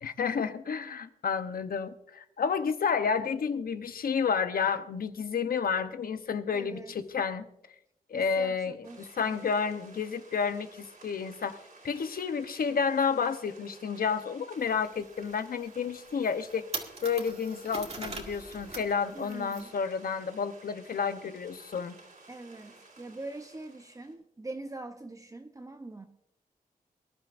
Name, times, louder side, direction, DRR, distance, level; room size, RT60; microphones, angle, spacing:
voice 1, 0.0-7.5 8.1-22.0, left 6 dB, 75° left, 10 dB, 0.9 m, -31 dB
voice 2, 6.5-6.9 8.1-9.4 12.0-12.1 19.1-19.7 22.3-26.1, right 2 dB, 20° right, 5 dB, 0.8 m, -43 dB
sound 1, 8.8-24.1, right 3 dB, 65° right, 3.7 m, -55 dB
sound 2, 14.6-14.7 15.2-15.3 15.8-15.9 16.2-18.9 19.2-19.6, right 3 dB, 45° right, 2.0 m, -40 dB
24.0 x 11.5 x 2.6 m, 0.79 s
wide cardioid pair, 100°, 15 cm